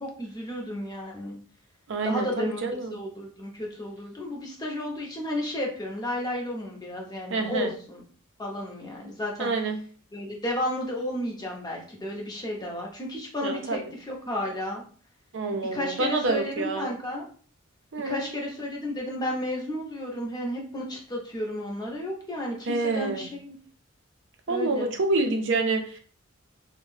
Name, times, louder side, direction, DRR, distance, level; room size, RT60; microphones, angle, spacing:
voice 1, 0.0-1.4 2.0-2.6 2.9-8.0 8.4-9.5 10.1-14.8 15.7-17.3 18.0-23.6 24.5-24.9, left 1 dB, 20° left, -1 dB, 0.7 m, -33 dB
voice 2, 1.9-3.0 7.3-7.7 9.4-9.8 13.4-13.8 15.3-16.9 17.9-18.2 22.7-23.3 24.5-26.0, right 3 dB, 60° right, 4 dB, 0.5 m, -27 dB
2.7 x 2.1 x 3.1 m, 0.43 s
head